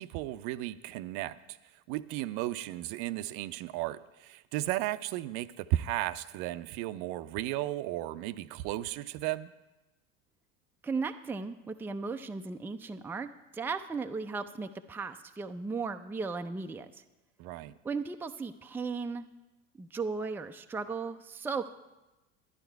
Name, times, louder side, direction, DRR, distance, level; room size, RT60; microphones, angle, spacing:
voice 1, 0.0-1.6 1.9-9.5 17.4-17.8, right 15 dB, 55° right, 13 dB, 0.6 m, -35 dB
voice 2, 10.8-16.9 17.8-19.2 19.8-21.7, right 4 dB, 5° right, 6 dB, 0.5 m, -36 dB
12.0 x 10.5 x 4.6 m, 1.0 s
hypercardioid pair, 75°, 39 cm